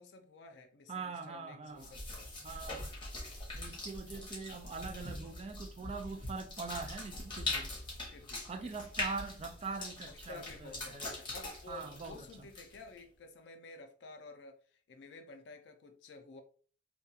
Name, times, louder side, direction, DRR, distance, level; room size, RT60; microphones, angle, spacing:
voice 1, 0.0-2.4 7.8-8.7 10.1-16.4, left 3 dB, 70° left, 0.4 m, -52 dB
voice 2, 0.9-2.0 2.4-2.9 3.5-7.7 8.5-11.1 11.7-12.3, right 4 dB, 35° right, 0.3 m, -43 dB
sound 1, 1.8-13.0, left 2 dB, 25° left, 0.9 m, -42 dB
2.3 x 2.2 x 2.7 m
head